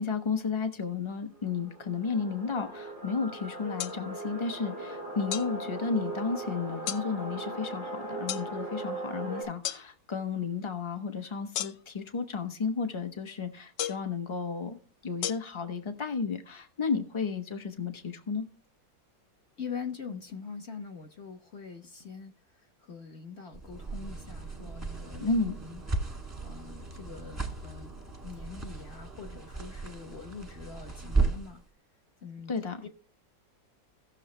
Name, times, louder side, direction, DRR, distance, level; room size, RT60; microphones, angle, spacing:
voice 1, 0.0-18.4 25.2-25.6 32.5-32.8, left 5 dB, 25° left, 0.7 m, -33 dB
sound 1, 1.3-9.4, right 2 dB, 60° left, 6.8 m, -39 dB
sound 2, 3.8-4.0 5.3-5.5 6.9-7.1 8.3-8.5 9.6-9.8 11.5-12.0 13.8-14.1 15.2-15.3, left 12 dB, 75° left, 1.2 m, -33 dB
voice 2, 19.6-25.8 26.4-31.6 32.2-32.5 32.8-32.9, left 6 dB, 45° left, 1.0 m, -43 dB
sound 3, 23.5-31.6, right 3 dB, 10° right, 0.9 m, -35 dB
17.0 x 6.5 x 3.2 m
omnidirectional pair, 2.0 m